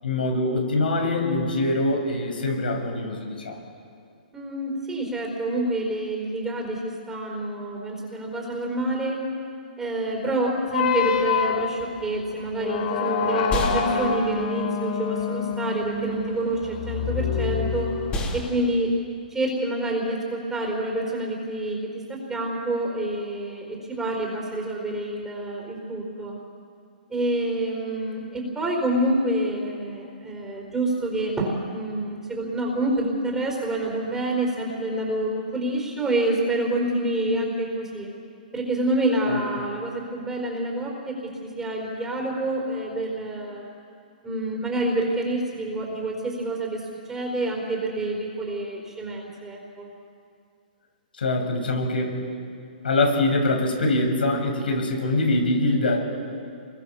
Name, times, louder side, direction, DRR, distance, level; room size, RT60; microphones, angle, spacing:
voice 1, 0.0-3.6 39.2-39.4 51.2-52.1 52.8-56.1, left 2 dB, 90° left, 2 dB, 6.3 m, -24 dB
voice 2, 4.3-9.2 9.8-17.9 18.3-18.9 19.3-26.4 27.1-38.1 38.5-41.2 41.4-43.6 44.2-49.9, right 1 dB, 10° right, -3 dB, 4.4 m, -27 dB
sound 1, 10.7-18.5, left 6 dB, 50° left, 3.3 m, -27 dB
sound 2, 13.4-21.8, left 1 dB, 20° left, 4.0 m, -36 dB
27.5 x 22.0 x 7.1 m, 2.3 s
hypercardioid pair, 145°, 5 cm